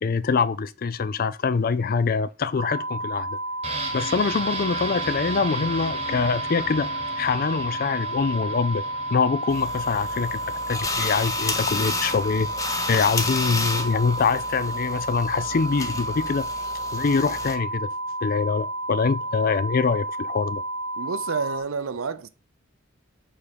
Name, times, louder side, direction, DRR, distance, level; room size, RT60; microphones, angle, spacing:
voice 1, 0.0-3.4 3.9-6.9 7.2-8.8 9.1-10.4 10.7-12.5 12.9-16.5 16.9-17.9 18.2-20.6, left 5 dB, 45° left, 0.4 m, -24 dB
sound 1, 2.6-21.6, right 1 dB, 50° right, 0.9 m, -31 dB
sound 2, 3.6-13.3 13.6-13.7, right 2 dB, 30° right, 1.1 m, -37 dB
sound 3, 9.5-17.6, left 3 dB, 15° left, 0.7 m, -31 dB
voice 2, 21.0-22.3, right 5 dB, 80° right, 0.6 m, -29 dB
6.4 x 3.7 x 5.1 m
head